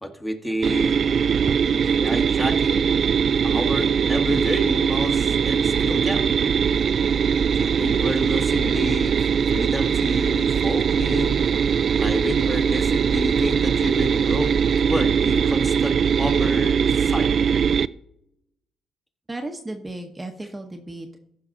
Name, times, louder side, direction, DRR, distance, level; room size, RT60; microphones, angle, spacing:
voice 1, 0.0-1.0 1.8-2.9 3.4-6.3 7.5-9.2 9.5-11.4 12.0-14.6 14.9-17.3, equal, 10° left, 5 dB, 1.4 m, -29 dB
sound 1, 0.6-17.9, right 7 dB, 55° right, 0.3 m, -21 dB
voice 2, 19.3-21.2, right 2 dB, 15° right, 4 dB, 1.0 m, -34 dB
15.0 x 5.7 x 3.7 m, 0.80 s
cardioid pair, 90°, 0 cm